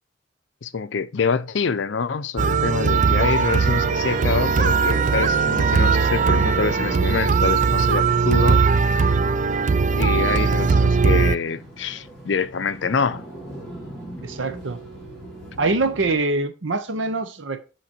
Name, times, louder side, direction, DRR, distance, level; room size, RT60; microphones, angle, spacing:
voice 1, 0.6-8.6 9.9-13.2, left 5 dB, 65° left, 0.5 m, -25 dB
sound 1, 2.4-11.4, right 5 dB, 40° right, 0.3 m, -19 dB
sound 2, 3.7-16.2, equal, ahead, 2.9 m, -39 dB
sound 3, 11.5-13.5 14.2-16.2, right 3 dB, 60° right, 2.5 m, -48 dB
voice 2, 14.2-14.8 15.6-17.6, right 3 dB, 75° right, 0.9 m, -24 dB
6.4 x 5.1 x 4.3 m
head